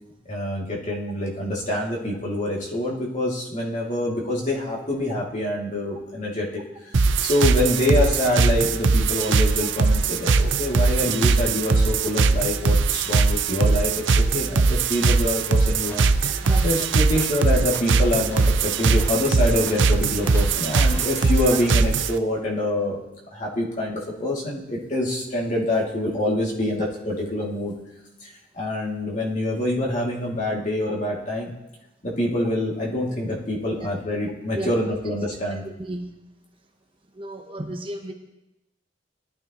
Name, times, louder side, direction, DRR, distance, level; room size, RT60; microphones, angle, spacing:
voice 1, 0.3-23.0 23.3-27.7 28.2-28.3 28.5-31.5 32.0-35.6, left 1 dB, 40° left, -3 dB, 2.7 m, -26 dB
sound 1, 6.9-22.2, right 4 dB, 90° right, 0.6 m, -20 dB
sound 2, 15.7-21.7, equal, 10° left, 1.5 m, -42 dB
voice 2, 16.4-16.9 21.5-21.6 32.4-32.5 33.8-33.9 34.5-34.7 35.5-36.2 37.1-38.1, right 1 dB, 30° right, 3 dB, 1.1 m, -34 dB
19.5 x 12.5 x 3.1 m, 0.94 s
head